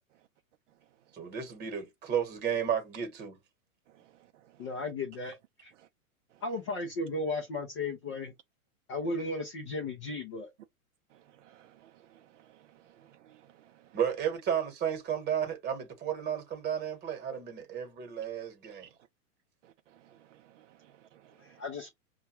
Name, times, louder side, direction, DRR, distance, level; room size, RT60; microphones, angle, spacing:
voice 1, 1.1-3.4 13.9-18.9, right 8 dB, 25° right, 1.1 m, -33 dB
voice 2, 4.6-5.4 5.6-5.7 6.4-8.3 8.9-10.5 21.4-21.9, left 2 dB, 25° left, 0.3 m, -35 dB
voice 3, 11.4-12.6 13.0-13.4 20.0-21.6, right 12 dB, 60° right, 0.5 m, -60 dB
5.3 x 2.3 x 2.8 m
hypercardioid pair, 125°, 43 cm